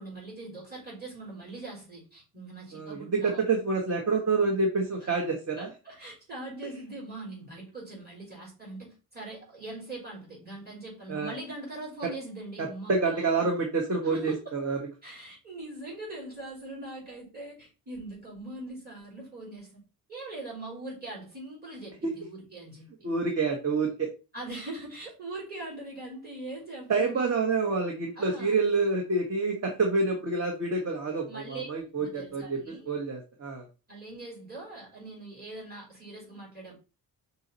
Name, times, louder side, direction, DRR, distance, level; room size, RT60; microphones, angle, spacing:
voice 1, 0.0-3.4 5.0-5.1 5.6-13.5 14.0-14.5 15.0-19.8 20.1-23.1 24.3-27.2 28.2-28.6 31.3-33.0 33.9-36.7, right 2 dB, 25° right, 3.9 m, -42 dB
voice 2, 2.7-5.7 11.1-11.3 12.6-14.8 23.0-24.1 26.9-32.6 32.9-33.7, right 3 dB, 40° right, 1.3 m, -28 dB
5.5 x 4.3 x 4.0 m
wide cardioid pair, 155°, 37 cm